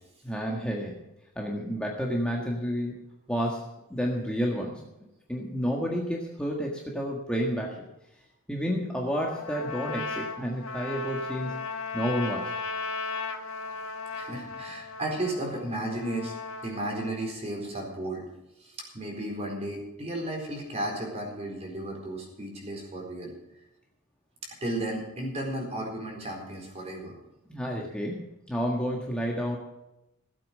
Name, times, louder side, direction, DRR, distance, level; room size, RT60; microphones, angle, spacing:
voice 1, 0.2-1.0 1.3-3.0 3.3-3.6 3.9-4.8 5.3-7.8 8.5-12.5 27.5-29.6, equal, 5° left, -2 dB, 1.6 m, -30 dB
Trumpet, 9.2-17.3, left 4 dB, 75° left, 1.6 m, -36 dB
voice 2, 14.1-16.3 16.6-18.2 18.6-23.3 24.6-27.1, right 1 dB, 30° right, 1 dB, 4.3 m, -34 dB
16.5 x 8.6 x 6.6 m, 0.91 s
head